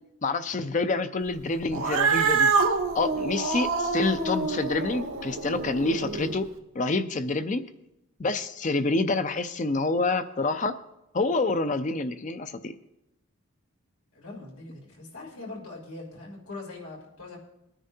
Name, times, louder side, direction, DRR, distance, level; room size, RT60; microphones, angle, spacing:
voice 1, 0.2-2.5 2.9-6.5 6.7-7.6 8.2-10.7 11.1-12.7, left 3 dB, 35° left, 10 dB, 0.5 m, -27 dB
Cat, 1.7-6.3, right 4 dB, 80° right, 1.2 m, -26 dB
voice 2, 14.1-17.4, left 2 dB, 90° left, -2 dB, 3.2 m, -42 dB
20.5 x 9.9 x 2.7 m, 0.88 s
head